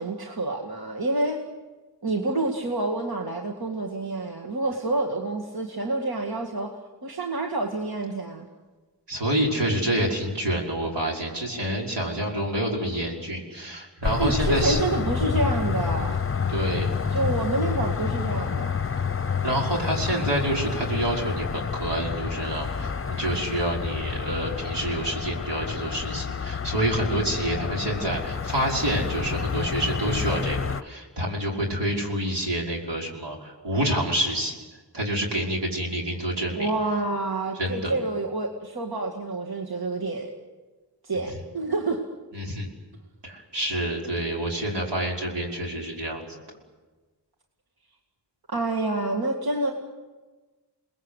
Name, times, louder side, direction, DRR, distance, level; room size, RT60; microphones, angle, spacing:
voice 1, 0.0-1.4 2.0-6.8 7.0-8.5 14.2-16.2 17.1-18.7 36.6-40.3 41.0-42.0 48.5-49.7, right 2 dB, 60° right, -1 dB, 2.3 m, -28 dB
voice 2, 9.1-14.8 16.5-17.2 19.4-34.6 34.9-36.7 37.6-37.9 42.3-42.7 43.2-46.2, right 1 dB, 80° right, -1 dB, 5.5 m, -28 dB
sound 1, 14.0-30.8, left 6 dB, 30° left, 0.8 m, -29 dB
29.0 x 20.5 x 8.3 m, 1.3 s
wide cardioid pair, 75°, 41 cm